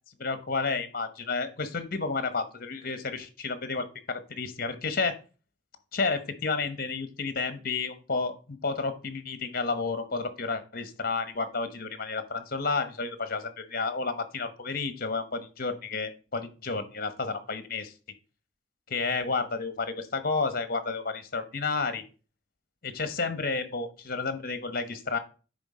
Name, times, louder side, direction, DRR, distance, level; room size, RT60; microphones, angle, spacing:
voice 1, 0.2-5.2 5.9-17.9 18.9-22.0 22.8-25.2, left 4 dB, 55° left, 11 dB, 1.1 m, -31 dB
9.7 x 3.8 x 4.9 m, 0.35 s
head